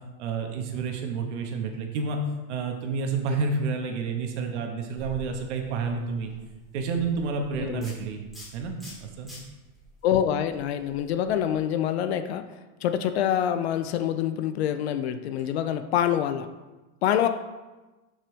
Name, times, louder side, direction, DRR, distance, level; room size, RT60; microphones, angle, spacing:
voice 1, 0.2-2.2 2.5-6.3 6.7-8.2 8.5-8.7 9.0-9.3, right 4 dB, 50° right, 3 dB, 1.6 m, -29 dB
sound 1, 5.0-11.6, equal, ahead, 2.9 m, -48 dB
voice 2, 7.6-7.9 10.0-12.4 12.8-16.5 17.0-17.3, left 10 dB, 45° left, 9 dB, 0.6 m, -26 dB
12.5 x 5.9 x 3.4 m, 1.1 s
supercardioid pair, 155°, 45 cm